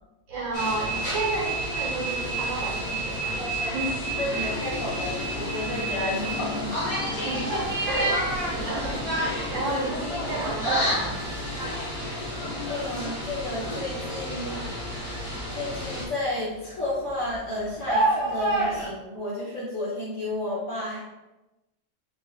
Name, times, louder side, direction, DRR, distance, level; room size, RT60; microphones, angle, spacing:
voice 1, 0.3-4.6 6.9-11.3, right 2 dB, 85° right, -3 dB, 1.8 m, -32 dB
sound 1, 0.5-16.0, right 1 dB, 20° left, 1.2 m, -31 dB
sound 2, 4.0-13.1, left 5 dB, 70° left, 0.8 m, -40 dB
voice 2, 4.2-6.7 12.7-14.9 15.5-21.0, left 1 dB, 45° left, -10 dB, 1.3 m, -32 dB
sound 3, 7.6-11.8 12.0-13.5 14.0-18.9, right 2 dB, 30° right, 1.1 m, -31 dB
4.2 x 2.8 x 3.3 m, 1.0 s
omnidirectional pair, 2.0 m